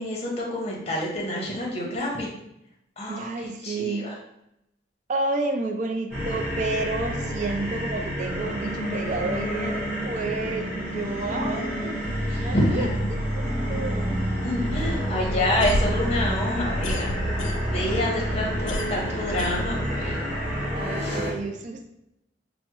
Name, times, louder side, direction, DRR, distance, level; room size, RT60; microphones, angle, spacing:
voice 1, 0.0-2.3 3.0-3.3 3.6-4.2 12.3-13.1 14.4-17.1 17.7-20.2 21.0-21.2, left 1 dB, 35° left, -2 dB, 0.7 m, -28 dB
voice 2, 3.1-4.0 5.1-10.7 10.9-12.0 12.3-13.4 13.7-14.1 20.7-21.9, right 3 dB, 40° right, 4 dB, 0.3 m, -30 dB
sound 1, 6.1-21.3, equal, 5° right, 1.1 m, -28 dB
sound 2, 15.4-18.0 18.3-20.2, left 1 dB, 85° left, 0.3 m, -31 dB
3.4 x 2.0 x 2.9 m, 0.82 s
head